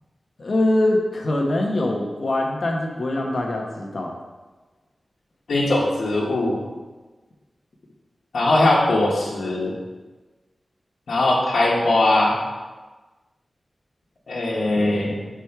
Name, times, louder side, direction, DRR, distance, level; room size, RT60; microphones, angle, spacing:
voice 1, 0.4-4.1, left 1 dB, 55° left, 0 dB, 1.0 m, -23 dB
voice 2, 5.5-6.6 8.3-9.7 11.1-12.4 14.3-15.2, left 2 dB, 90° left, -5 dB, 1.3 m, -20 dB
5.0 x 4.6 x 5.8 m, 1.3 s
wide cardioid pair, 95°, 0 cm